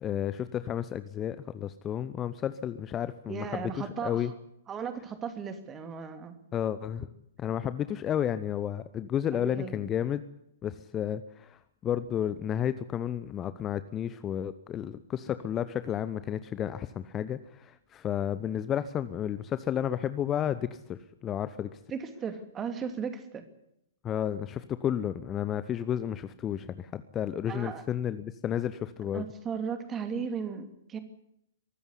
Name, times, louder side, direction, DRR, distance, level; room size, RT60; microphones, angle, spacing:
voice 1, 0.0-4.3 6.5-7.1 7.4-10.2 10.6-21.7 24.0-29.2, left 10 dB, 20° left, 14 dB, 0.8 m, -32 dB
voice 2, 3.3-4.3 4.7-6.4 9.3-9.9 21.9-23.4 27.5-27.8 29.1-31.0, right 6 dB, 20° right, 8 dB, 2.7 m, -36 dB
23.5 x 14.0 x 9.7 m, 0.77 s
figure-of-eight pair, 110°, 0 cm